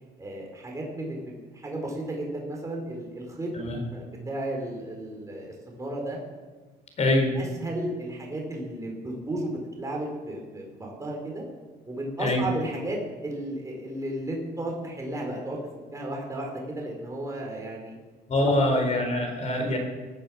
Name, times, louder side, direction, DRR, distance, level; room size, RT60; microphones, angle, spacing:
voice 1, 0.2-3.5 3.9-6.2 7.0-11.4 11.9-15.6 15.9-17.9 18.4-18.8 19.5-19.6, right 1 dB, 20° right, 0 dB, 4.3 m, -34 dB
voice 2, 7.0-7.4 12.2-12.4 18.3-19.8, left 1 dB, 40° left, 4 dB, 4.4 m, -24 dB
19.0 x 9.0 x 7.2 m, 1.3 s
cardioid pair, 110°, 17 cm